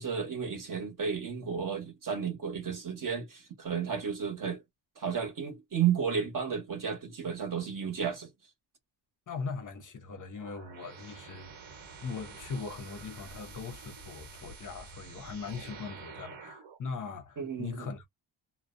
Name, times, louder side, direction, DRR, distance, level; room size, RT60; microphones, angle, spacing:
voice 1, 0.0-4.6 5.0-8.3 17.4-17.9, right 7 dB, 40° right, 0.9 m, -32 dB
voice 2, 9.3-11.6 12.0-18.1, left 5 dB, 40° left, 0.5 m, -40 dB
sound 1, 10.4-16.8, right 4 dB, 65° right, 1.1 m, -48 dB
2.5 x 2.0 x 2.4 m
wide cardioid pair, 155°, 49 cm